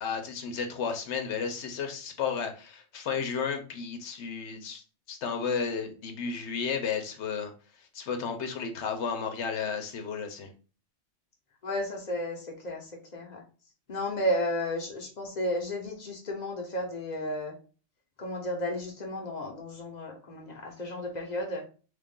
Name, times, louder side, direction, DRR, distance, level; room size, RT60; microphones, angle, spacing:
voice 1, 0.0-4.8 5.1-7.5 7.8-10.5, left 6 dB, 80° left, 4 dB, 1.0 m, -33 dB
voice 2, 11.6-13.4 13.9-17.5 18.2-21.6, left 1 dB, 40° left, 1 dB, 0.9 m, -33 dB
3.2 x 2.4 x 3.6 m, 0.37 s
omnidirectional pair, 1.2 m